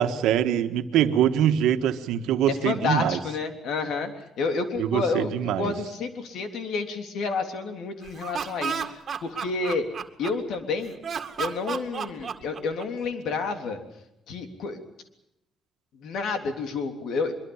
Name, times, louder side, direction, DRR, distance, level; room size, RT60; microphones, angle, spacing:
voice 1, 0.0-3.2 4.8-5.7, right 10 dB, 90° right, 7 dB, 1.6 m, -23 dB
voice 2, 2.5-9.8 10.2-11.0 11.4-13.8 14.3-14.8 16.0-17.3, left 4 dB, 75° left, 6 dB, 3.4 m, -30 dB
Laughter, 8.1-10.6 11.0-13.1, right 7 dB, 50° right, 2.1 m, -32 dB
23.5 x 23.0 x 7.2 m, 0.85 s
cardioid pair, 90°, 0 cm